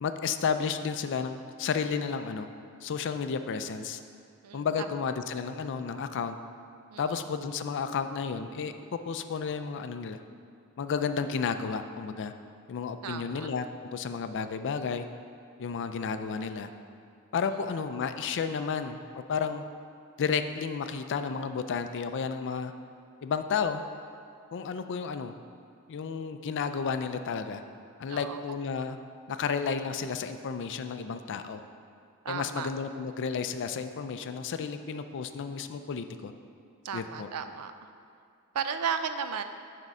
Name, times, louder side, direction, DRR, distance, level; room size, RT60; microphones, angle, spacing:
voice 1, 0.0-2.5 2.8-4.0 4.5-6.3 7.0-8.7 9.1-10.2 10.8-12.3 12.7-13.6 13.9-15.0 15.6-16.7 17.3-19.0 19.3-19.6 20.2-22.7 23.2-23.8 24.5-25.3 25.9-27.6 28.0-29.0 29.3-31.6 32.3-36.3 36.9-37.3, left 6 dB, 55° left, 9 dB, 0.4 m, -32 dB
voice 2, 4.4-5.0 6.9-7.2 13.0-13.5 17.5-17.6 28.1-28.4 32.2-32.7 36.8-37.7 38.5-39.4, right 6 dB, 85° right, 9 dB, 0.4 m, -34 dB
9.1 x 3.6 x 5.4 m, 2.4 s
head